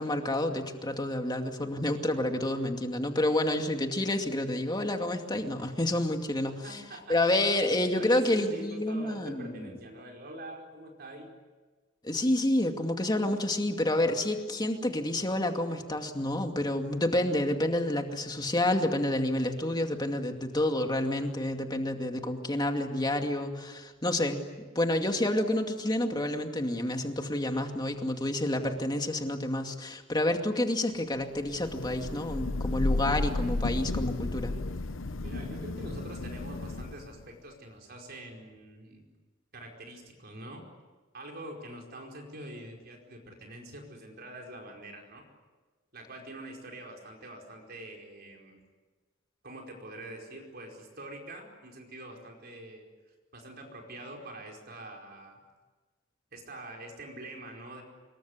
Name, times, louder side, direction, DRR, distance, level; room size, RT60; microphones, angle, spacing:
voice 1, 0.0-6.8 7.1-9.7 12.0-24.4 24.7-34.5, left 1 dB, 20° left, 4 dB, 2.4 m, -29 dB
voice 2, 6.6-7.2 7.6-11.3 35.2-39.0 39.5-40.6 41.1-45.2 45.9-48.6 49.4-52.9 53.3-55.4 56.3-57.8, right 1 dB, 55° right, 1 dB, 4.9 m, -45 dB
Thunder / Rain, 31.5-37.2, left 2 dB, 85° left, 0.9 m, -33 dB
26.0 x 22.5 x 9.7 m, 1.3 s
head